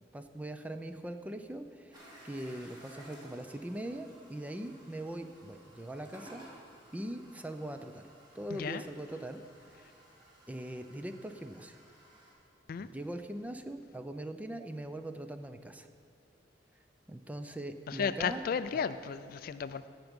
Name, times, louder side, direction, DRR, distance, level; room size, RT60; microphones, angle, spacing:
voice 1, 0.1-6.4 6.9-8.1 8.3-9.4 9.7-9.9 10.5-11.8 12.8-15.9 17.1-18.4 18.7-18.8, right 1 dB, 10° right, 8 dB, 0.5 m, -41 dB
sound 1, 1.9-12.3, right 1 dB, 25° right, 2.8 m, -56 dB
voice 2, 8.5-8.8 12.7-12.9 17.9-19.9, left 6 dB, 50° left, 13 dB, 0.3 m, -34 dB
16.5 x 6.0 x 5.3 m, 2.4 s
head